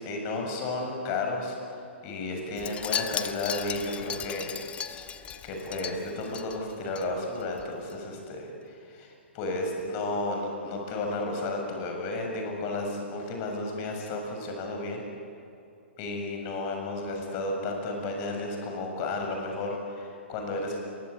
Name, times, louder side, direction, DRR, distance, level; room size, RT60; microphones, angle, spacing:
voice 1, 0.0-1.6 2.0-4.6 5.1-15.0 16.0-20.8, left 2 dB, 35° left, 2 dB, 7.2 m, -33 dB
Wind chime, 2.6-7.1 7.4-7.6 7.9-8.0, left 8 dB, 20° left, 1.2 m, -36 dB
28.0 x 23.5 x 8.5 m, 2.7 s
hypercardioid pair, 125°, 7 cm